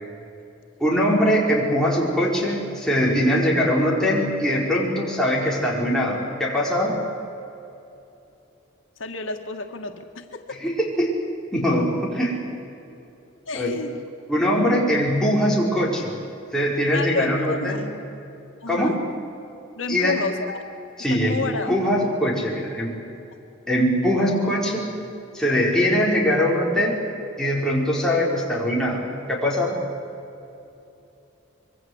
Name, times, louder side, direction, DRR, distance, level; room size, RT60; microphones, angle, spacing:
voice 1, 0.8-6.9 10.6-11.2 11.5-12.4 13.5-13.8 14.3-16.1 16.5-17.8 18.7-19.0 19.9-20.2 21.0-21.4 21.7-22.9 23.7-24.9 25.3-27.0 27.4-29.0 29.3-29.8, equal, 5° left, -4 dB, 4.8 m, -22 dB
voice 2, 9.0-10.6 13.5-14.0 16.9-17.9 18.6-18.9 19.8-20.6 21.1-21.8, left 3 dB, 85° left, 4 dB, 1.8 m, -30 dB
25.5 x 23.0 x 8.0 m, 2.9 s
head